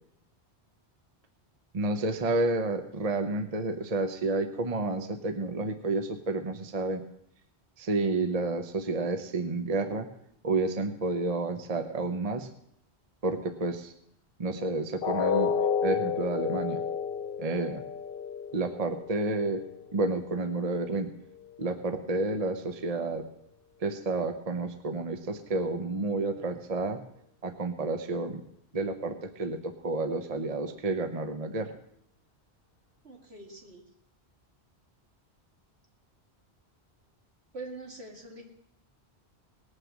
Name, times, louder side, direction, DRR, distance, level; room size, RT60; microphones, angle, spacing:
voice 1, 1.7-7.0 7.8-10.1 10.4-12.5 13.2-13.9 14.4-15.5 15.8-16.8 17.4-17.8 18.5-19.6 19.9-21.1 21.6-23.3 23.8-27.0 27.4-28.4 28.7-31.7, right 3 dB, 40° right, 7 dB, 0.9 m, -30 dB
sound 1, 15.0-21.0 21.4-21.6 22.0-22.1, left 7 dB, 60° left, 1.0 m, -32 dB
voice 2, 33.0-33.8 37.5-38.4, right 2 dB, 75° right, 0 dB, 2.6 m, -43 dB
19.0 x 6.6 x 7.4 m, 0.72 s
omnidirectional pair, 1.1 m